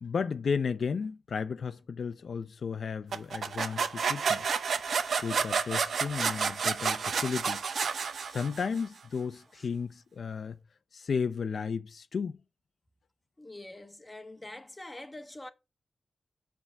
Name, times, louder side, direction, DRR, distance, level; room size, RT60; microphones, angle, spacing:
voice 1, 0.0-4.4 5.2-7.6 8.2-10.6 10.9-12.3, left 5 dB, 70° left, 0.5 m, -34 dB
sound 1, 3.1-8.8, right 6 dB, 80° right, 0.7 m, -30 dB
voice 2, 13.4-15.5, left 1 dB, 20° left, 1.1 m, -45 dB
7.1 x 3.5 x 6.2 m
cardioid pair, 70°, 0 cm